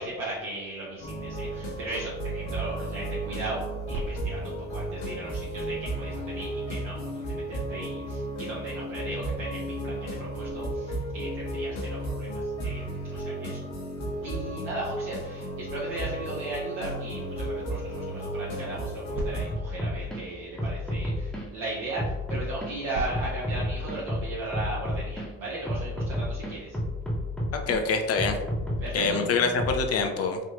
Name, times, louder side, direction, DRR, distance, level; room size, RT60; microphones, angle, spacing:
voice 1, 0.0-13.7 14.2-26.8 28.8-29.2, right 2 dB, 55° right, -6 dB, 0.8 m, -36 dB
sound 1, 1.0-19.5, right 1 dB, 70° left, 1.0 m, -34 dB
sound 2, 19.5-20.2 20.6-21.5 22.0-22.7 23.1-25.3 25.7-27.8 28.2-29.9, left 1 dB, ahead, 0.9 m, -31 dB
voice 2, 27.5-28.4 28.9-30.4, left 4 dB, 40° left, 4 dB, 0.6 m, -25 dB
3.5 x 2.7 x 2.5 m, 1.1 s
figure-of-eight pair, 50°, 40 cm